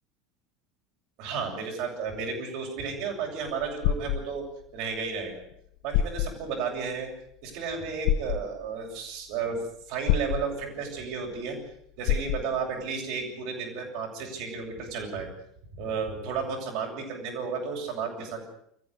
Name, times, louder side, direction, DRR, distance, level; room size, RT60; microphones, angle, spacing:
voice 1, 1.2-4.4 4.7-5.4 5.8-7.1 7.4-11.6 12.0-15.3 15.8-18.4, right 5 dB, 55° right, 1 dB, 7.9 m, -33 dB
sound 1, 3.5-4.2 5.5-5.6 5.9-6.3 8.0-8.4 10.1-10.4 12.1-12.4, left 10 dB, 60° left, 1.0 m, -25 dB
24.5 x 15.0 x 9.8 m, 0.71 s
figure-of-eight pair, 75°, 0 cm